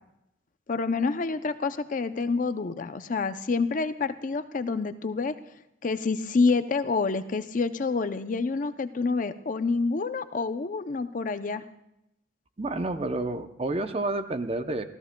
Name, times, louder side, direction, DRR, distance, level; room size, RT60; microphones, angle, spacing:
voice 1, 0.7-5.4 5.8-11.6, left 4 dB, 45° left, 11 dB, 0.5 m, -27 dB
voice 2, 12.6-14.8, right 2 dB, 30° right, 9 dB, 0.6 m, -29 dB
28.5 x 14.0 x 2.2 m, 0.83 s
head